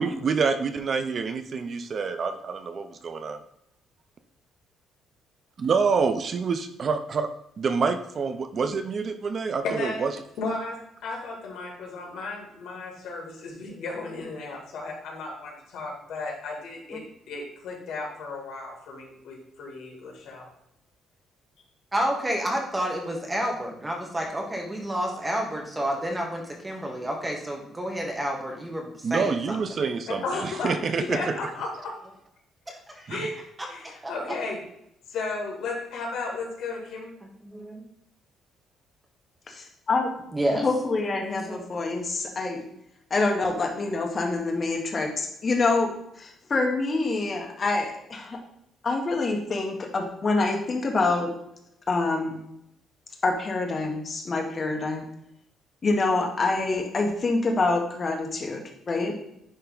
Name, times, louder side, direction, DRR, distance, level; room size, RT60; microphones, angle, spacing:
voice 1, 0.0-3.4 5.6-7.3 7.6-10.1 29.0-31.3 33.1-33.3, right 5 dB, 40° right, 9 dB, 0.5 m, -27 dB
voice 2, 9.6-10.1 10.4-20.5 30.1-31.9 33.1-33.4 33.7-34.6 35.1-37.1, left 3 dB, 75° left, -1 dB, 2.5 m, -34 dB
voice 3, 21.9-29.6 32.7-33.1 33.6-33.7 34.0-34.1 37.2-37.8 40.3-40.6 41.1-41.6, equal, 15° right, 1 dB, 1.3 m, -30 dB
voice 4, 39.5-40.1 40.5-42.6 43.1-48.4 48.8-51.3 51.9-52.4 53.2-55.1 55.8-59.2, left 3 dB, 30° left, 1 dB, 1.3 m, -26 dB
9.9 x 3.3 x 3.9 m, 0.77 s
cardioid pair, 145°, 0 cm